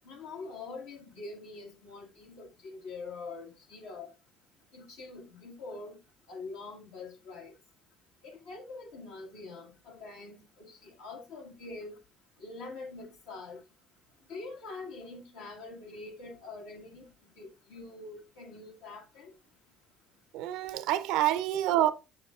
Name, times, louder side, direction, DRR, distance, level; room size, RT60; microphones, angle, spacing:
voice 1, 0.0-4.1 4.7-6.0 6.3-7.5 8.2-12.0 12.4-13.6 14.3-17.1 17.4-19.3, left 3 dB, 85° left, 1.6 m, -44 dB
voice 2, 20.3-21.9, right 13 dB, 75° right, 0.5 m, -27 dB
6.6 x 6.6 x 2.3 m
supercardioid pair, 70°, 0 cm